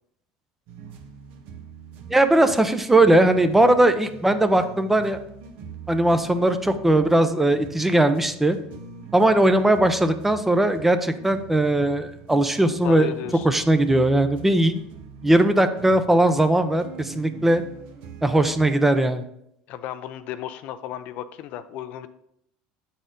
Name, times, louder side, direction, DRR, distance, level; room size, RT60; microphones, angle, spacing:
sound 1, 0.7-18.7, right 6 dB, 65° right, 0.8 m, -43 dB
voice 1, 2.1-5.2 5.9-8.6 9.1-13.1 13.4-14.7 15.2-17.6 18.2-19.2, right 1 dB, 10° right, 9 dB, 0.5 m, -19 dB
voice 2, 12.8-13.5 19.7-22.1, left 11 dB, 60° left, 12 dB, 0.4 m, -34 dB
7.9 x 4.2 x 3.8 m, 0.77 s
supercardioid pair, 110°, 3 cm